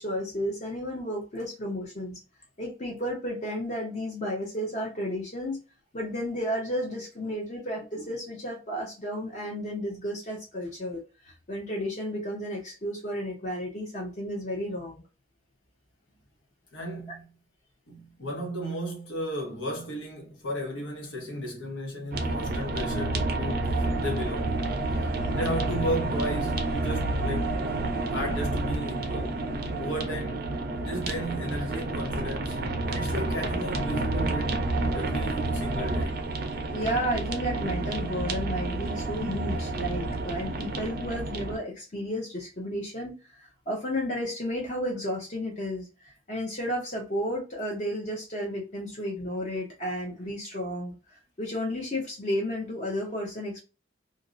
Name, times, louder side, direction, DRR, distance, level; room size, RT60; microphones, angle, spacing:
voice 1, 0.0-2.2 2.6-5.6 5.9-15.0 25.2-25.3 36.7-53.6, equal, 40° left, 0.7 m, -33 dB
voice 2, 16.7-17.2 17.9-24.7 25.3-27.6 28.1-29.4 29.8-30.5 30.8-32.6 32.9-34.6 34.9-36.2, equal, 80° left, 1.0 m, -34 dB
sound 1, 22.1-41.6, right 2 dB, 50° right, 0.5 m, -29 dB
2.5 x 2.0 x 2.4 m
head